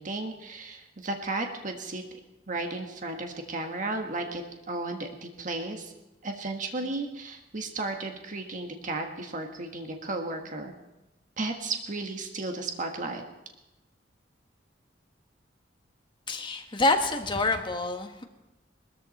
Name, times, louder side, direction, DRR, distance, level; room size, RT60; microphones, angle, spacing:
voice 1, 0.0-2.0 2.5-5.9 6.2-10.7 11.4-13.2, right 2 dB, 45° right, 4 dB, 1.5 m, -34 dB
voice 2, 16.3-18.2, left 2 dB, 25° left, 5 dB, 1.3 m, -27 dB
20.0 x 13.5 x 4.3 m, 1.0 s
head